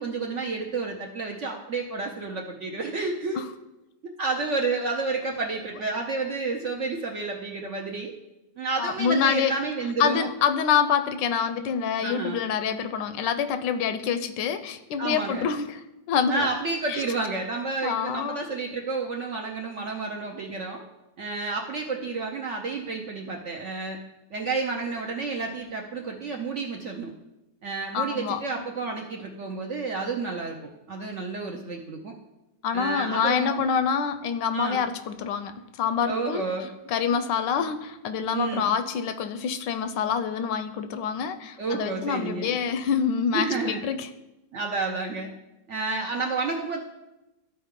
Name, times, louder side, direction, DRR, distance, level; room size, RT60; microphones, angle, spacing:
voice 1, 0.0-3.4 4.2-8.1 8.6-10.3 12.0-12.4 15.0-15.5 16.3-20.8 21.2-24.0 24.3-27.1 27.6-32.1 32.7-33.7 34.5-34.9 36.1-36.7 38.3-38.7 41.6-42.5 43.3-43.8 44.5-45.3 45.7-46.8, right 3 dB, 60° right, 1 dB, 0.8 m, -30 dB
voice 2, 8.8-9.5 10.0-15.8 16.1-16.5 16.9-17.0 17.8-18.4 27.9-28.4 32.6-36.4 36.9-44.1, left 7 dB, 80° left, 11 dB, 1.2 m, -26 dB
13.5 x 4.5 x 3.7 m, 0.96 s
omnidirectional pair, 2.0 m